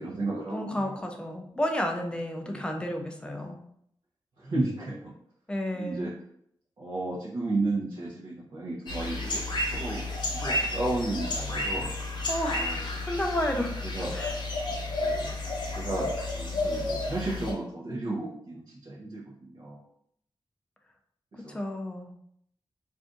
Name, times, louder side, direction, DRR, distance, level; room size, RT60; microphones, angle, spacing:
voice 1, 0.0-1.1 2.4-2.6 4.4-5.1 5.7-6.1 6.8-11.9 12.5-13.0 13.8-14.2 15.0-15.3 15.7-19.8 21.3-21.6, right 2 dB, 55° right, -8 dB, 0.7 m, -33 dB
voice 2, 0.5-3.6 5.5-6.1 12.3-13.8 14.1-14.4 21.5-22.1, left 1 dB, 10° left, 2 dB, 0.4 m, -32 dB
sound 1, 8.9-17.5, left 2 dB, 60° left, 0.8 m, -31 dB
2.6 x 2.4 x 3.6 m, 0.70 s
wide cardioid pair, 145°, 9 cm